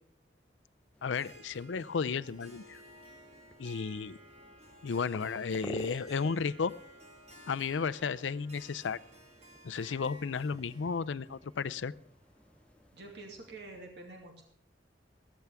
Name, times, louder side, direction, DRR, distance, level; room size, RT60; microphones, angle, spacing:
sound 1, 0.9-13.8, equal, 5° left, 0.7 m, -53 dB
voice 1, 1.0-2.8 3.6-4.2 4.8-6.7 7.5-9.0 9.6-11.9, left 5 dB, 90° left, 14 dB, 0.5 m, -33 dB
Harp, 1.1-12.9, right 1 dB, 35° right, 2.6 m, -55 dB
voice 2, 12.9-14.4, right 2 dB, 65° right, 2 dB, 2.5 m, -47 dB
15.0 x 14.0 x 3.5 m, 0.65 s
head